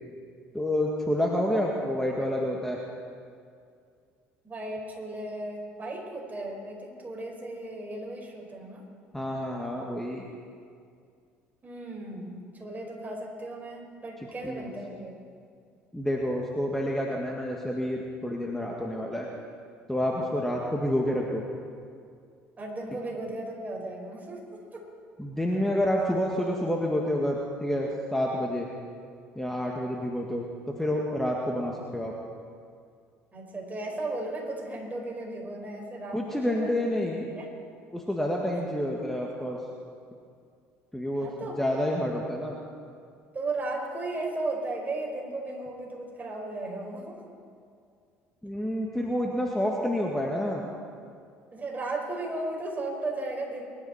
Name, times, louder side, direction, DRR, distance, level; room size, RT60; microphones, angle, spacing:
voice 1, 0.5-2.8 9.1-10.3 14.4-14.7 15.9-19.3 19.9-21.4 25.2-28.7 29.4-32.1 36.1-37.3 37.9-39.6 40.9-41.3 41.6-42.6 48.4-50.6, left 1 dB, 5° left, -1 dB, 2.0 m, -28 dB
voice 2, 4.4-8.8 11.6-15.1 22.6-24.4 24.7-24.8 33.3-37.0 37.4-37.5 41.2-41.6 43.3-47.2 51.5-53.7, right 2 dB, 25° right, -1 dB, 5.2 m, -35 dB
23.5 x 12.0 x 4.4 m, 2.3 s
hypercardioid pair, 65°, 6 cm